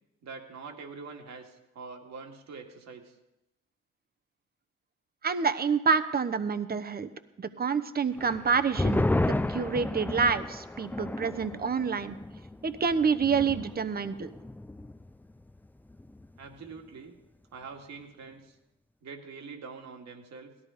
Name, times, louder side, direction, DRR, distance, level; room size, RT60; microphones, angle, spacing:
voice 1, 0.2-3.2 16.4-17.2 17.5-18.6 19.0-20.5, right 4 dB, 65° right, 4 dB, 2.3 m, -44 dB
voice 2, 5.2-7.1 7.4-12.2 12.6-14.3, right 5 dB, 30° right, 10 dB, 1.0 m, -28 dB
sound 1, 8.2-15.1 15.4-15.5 15.9-16.4, left 2 dB, 5° left, 0.5 m, -32 dB
17.5 x 13.5 x 5.1 m, 0.93 s
cardioid pair, 90°, 30 cm